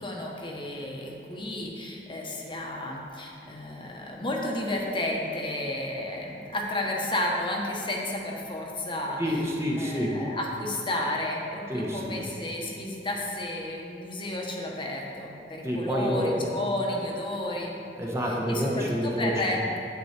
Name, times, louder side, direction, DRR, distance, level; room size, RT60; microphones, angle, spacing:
voice 1, 0.0-9.2 9.8-17.7 18.5-19.6, left 1 dB, 30° left, -1 dB, 1.2 m, -32 dB
voice 2, 9.2-10.2 11.7-12.2 15.6-16.6 18.0-19.6, equal, 15° right, -2 dB, 1.1 m, -28 dB
9.6 x 8.1 x 4.4 m, 2.7 s
head